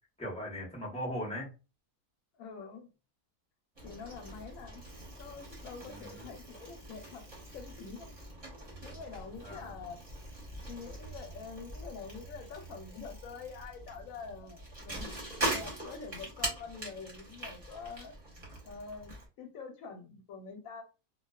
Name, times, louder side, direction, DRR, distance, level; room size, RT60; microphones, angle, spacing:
voice 1, 0.2-1.5 5.8-6.3 9.4-9.7, equal, 5° left, 0.5 m, -39 dB
voice 2, 2.3-2.9 3.8-4.8 5.2-7.2 7.5-8.1 8.8-10.0 10.7-15.1 15.5-18.1 18.6-20.8, left 5 dB, 70° left, 0.9 m, -46 dB
Bicycle, 3.8-19.3, right 1 dB, 30° right, 0.8 m, -42 dB
2.4 x 2.3 x 2.2 m
omnidirectional pair, 1.6 m